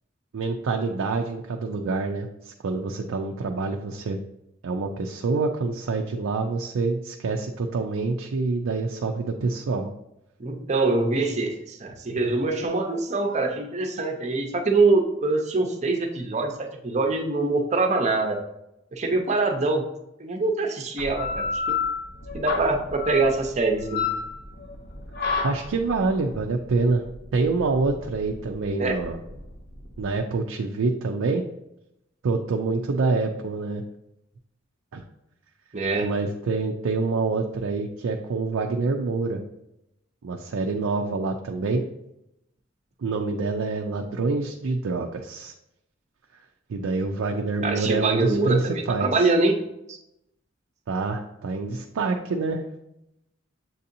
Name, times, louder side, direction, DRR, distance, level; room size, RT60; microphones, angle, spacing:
voice 1, 0.3-4.2 4.6-9.9 25.4-27.0 27.3-29.2 30.0-31.4 32.2-33.8 34.9-35.0 36.0-39.4 40.2-41.8 43.0-45.5 46.7-49.1 50.9-52.6, right 3 dB, 90° right, 2 dB, 0.4 m, -26 dB
voice 2, 10.4-16.5 16.8-18.4 18.9-19.8 20.2-21.8 22.3-24.0 28.8-29.0 35.7-36.1 47.6-49.5 49.9-50.0, right 3 dB, 35° right, 3 dB, 0.6 m, -24 dB
sound 1, 21.0-30.2, left 5 dB, 50° left, 0.9 m, -31 dB
7.5 x 2.8 x 2.6 m, 0.85 s
head